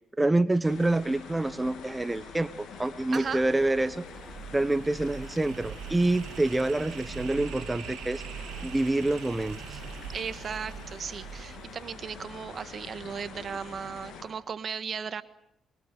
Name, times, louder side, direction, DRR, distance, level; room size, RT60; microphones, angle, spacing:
voice 1, 0.2-4.0 4.5-8.2 8.6-9.8, right 2 dB, 15° right, 13 dB, 1.0 m, -27 dB
sound 1, 0.6-14.2, left 5 dB, 75° left, 7.9 m, -46 dB
sound 2, 3.1-4.9, left 1 dB, 5° left, 6.1 m, -50 dB
voice 2, 3.1-3.5 10.1-15.2, right 6 dB, 50° right, 13 dB, 1.6 m, -36 dB
sound 3, 3.4-12.5, right 9 dB, 85° right, 3.5 m, -43 dB
24.5 x 24.0 x 9.3 m, 0.76 s
cardioid pair, 75°, 0 cm